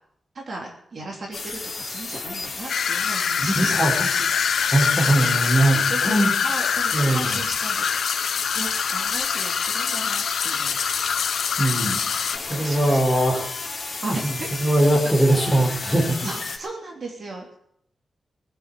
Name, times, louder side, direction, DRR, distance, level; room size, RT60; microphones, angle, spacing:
voice 1, 0.3-4.3 5.0-6.2 6.4-10.8 12.3-13.2 14.0-14.5 14.9-15.0 15.9-16.0 16.2-17.6, right 2 dB, 45° right, 0 dB, 3.3 m, -36 dB
sound 1, 1.3-16.6, left 3 dB, 35° left, 3.4 m, -32 dB
sound 2, 2.7-12.4, left 7 dB, 75° left, 0.6 m, -24 dB
voice 2, 3.4-3.9 4.7-6.3 6.9-7.4 11.6-12.0 12.5-13.5 14.2-16.3, right 1 dB, ahead, -1 dB, 4.9 m, -21 dB
21.0 x 8.0 x 8.4 m, 0.72 s
wide cardioid pair, 155°, 0 cm